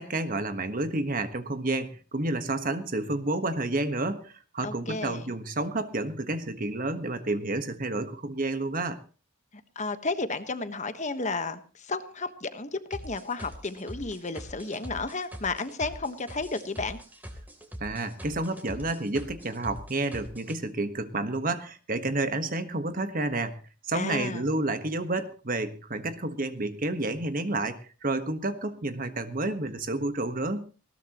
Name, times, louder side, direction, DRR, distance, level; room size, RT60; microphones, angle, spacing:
voice 1, 0.0-9.0 17.8-23.6 23.8-30.7, right 2 dB, 40° right, 9 dB, 1.4 m, -30 dB
voice 2, 4.6-5.3 9.7-17.0 23.9-24.4, left 3 dB, 35° left, 10 dB, 1.3 m, -32 dB
sound 1, 12.9-20.6, equal, 10° right, 3.1 m, -43 dB
19.5 x 18.0 x 3.0 m, 0.35 s
head